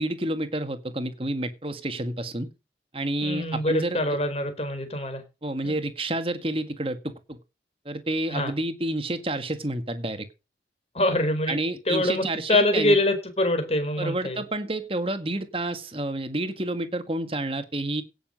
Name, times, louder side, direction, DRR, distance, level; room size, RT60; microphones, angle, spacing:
voice 1, 0.0-2.5 2.9-4.2 5.4-7.4 7.9-10.3 11.5-13.0 14.0-18.0, right 1 dB, 30° right, 10 dB, 1.8 m, -29 dB
voice 2, 3.2-5.2 5.6-5.7 8.3-8.5 10.9-11.6 11.9-12.2 12.5-14.4, left 1 dB, 35° left, 8 dB, 4.3 m, -24 dB
17.0 x 7.0 x 5.4 m, 0.30 s
head